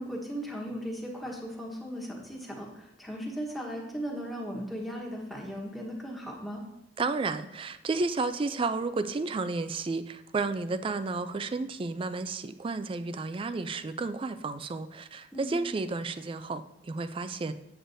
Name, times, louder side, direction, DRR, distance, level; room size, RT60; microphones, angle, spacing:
voice 1, 0.0-6.6 15.3-15.5, equal, ahead, -2 dB, 1.2 m, -37 dB
voice 2, 7.0-17.5, right 3 dB, 30° right, 12 dB, 0.3 m, -32 dB
7.9 x 7.8 x 2.6 m, 0.84 s
head